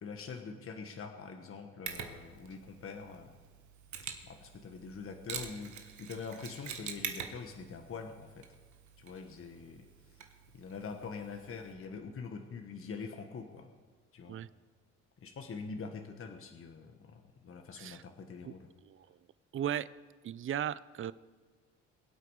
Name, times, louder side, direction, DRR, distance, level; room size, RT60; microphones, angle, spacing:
voice 1, 0.0-3.4 4.2-8.4 9.0-10.2 10.5-13.7 14.1-14.4 15.2-18.7, left 5 dB, 45° left, 4 dB, 1.4 m, -44 dB
Mechanisms, 1.9-11.7, right 7 dB, 70° right, 1.5 m, -46 dB
voice 2, 19.5-19.9 20.2-21.1, right 10 dB, 45° right, 18 dB, 0.5 m, -36 dB
23.0 x 8.4 x 4.9 m, 1.4 s
cardioid pair, 90°, 30 cm